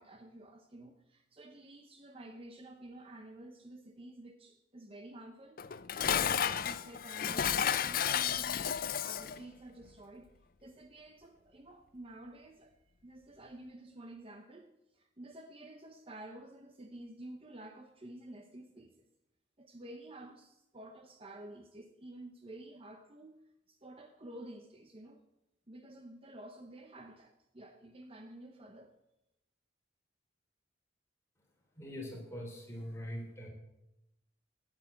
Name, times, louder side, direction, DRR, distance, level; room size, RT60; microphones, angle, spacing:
voice 1, 0.0-10.3 10.6-12.7 13.0-19.1 19.6-25.2 25.7-28.9, right 1 dB, 30° right, 0.8 m, -51 dB
Dishes pots and pans, 5.6-9.4, left 8 dB, 50° left, 0.5 m, -32 dB
voice 2, 31.8-33.5, equal, 15° left, 3.5 m, -42 dB
10.0 x 8.9 x 8.4 m
head